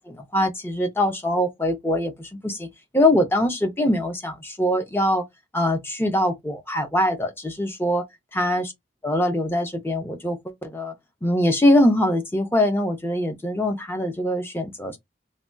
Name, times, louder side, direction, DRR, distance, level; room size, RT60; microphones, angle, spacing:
voice 1, 0.1-2.7 2.9-5.2 5.5-8.0 8.3-8.7 9.0-10.9 11.2-15.0, left 1 dB, 10° left, 0.6 m, -23 dB
3.2 x 2.2 x 2.6 m
head